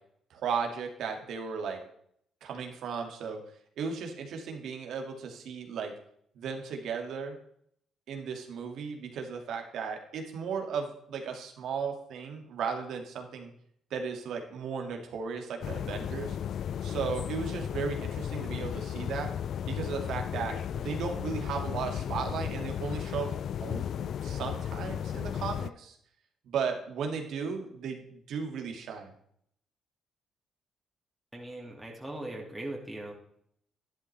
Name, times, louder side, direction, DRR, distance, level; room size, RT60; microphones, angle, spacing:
voice 1, 0.3-1.8 2.4-3.4 3.8-5.9 6.4-7.4 8.1-13.5 13.9-16.4 16.8-19.3 19.7-23.3 23.6-26.0 26.4-29.1, right 6 dB, 75° right, 3 dB, 2.2 m, -35 dB
sound 1, 15.6-25.7, left 9 dB, 65° left, 0.3 m, -34 dB
voice 2, 31.3-33.1, right 1 dB, 10° right, -2 dB, 2.4 m, -39 dB
11.5 x 11.0 x 3.4 m, 0.67 s
cardioid pair, 90°, 0 cm